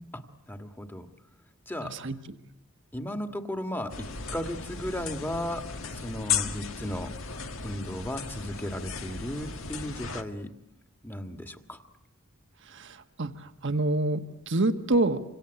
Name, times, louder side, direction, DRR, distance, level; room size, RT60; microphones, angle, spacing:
voice 1, 0.5-1.1 1.7-1.9 2.9-5.6 6.0-7.2 7.6-10.5 11.0-11.8, equal, 10° left, 7 dB, 1.8 m, -35 dB
voice 2, 1.8-2.4 12.6-15.2, right 2 dB, 60° right, 8 dB, 1.4 m, -28 dB
sound 1, 3.9-10.2, left 6 dB, 70° left, 1.7 m, -35 dB
27.0 x 26.0 x 8.2 m, 0.79 s
head